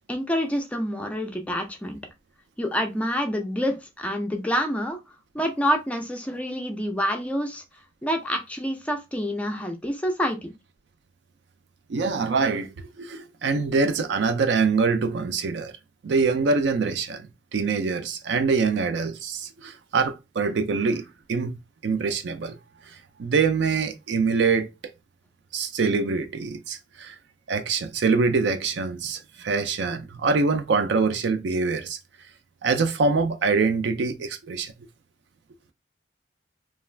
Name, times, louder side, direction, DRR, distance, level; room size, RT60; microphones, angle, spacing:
voice 1, 0.1-2.0 2.6-5.0 5.3-7.6 8.0-10.5, equal, 5° left, 0.3 m, -27 dB
voice 2, 11.9-15.7 16.0-21.0 21.3-21.5 21.8-22.6 23.2-24.7 25.5-27.2 27.5-32.0 32.6-34.7, right 4 dB, 60° right, 0.4 m, -24 dB
2.3 x 2.3 x 3.2 m
head